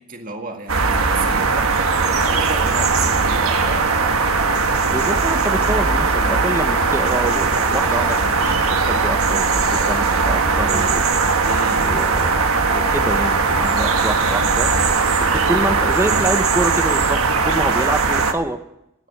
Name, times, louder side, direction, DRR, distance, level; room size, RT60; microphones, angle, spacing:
voice 1, 0.0-3.9 11.4-11.9, right 3 dB, 40° right, 3 dB, 1.9 m, -33 dB
sound 1, 0.7-18.3, right 4 dB, 75° right, 1.4 m, -19 dB
voice 2, 4.9-8.6 8.8-9.5 9.7-11.0 11.8-12.4 12.7-14.7 15.2-18.6, right 1 dB, 10° right, 8 dB, 0.8 m, -26 dB
20.5 x 7.5 x 8.5 m, 0.83 s
head